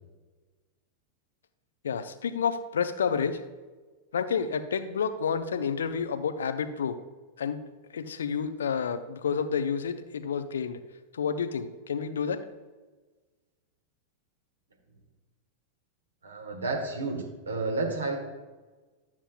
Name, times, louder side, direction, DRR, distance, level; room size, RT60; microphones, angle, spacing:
voice 1, 1.8-3.4 4.1-7.0 7.4-7.6 7.9-10.8 11.1-12.4, left 6 dB, 65° left, 11 dB, 0.5 m, -29 dB
voice 2, 16.2-18.2, right 3 dB, 70° right, 1 dB, 1.4 m, -31 dB
11.0 x 7.2 x 2.3 m, 1.3 s
figure-of-eight pair, 90°, 0 cm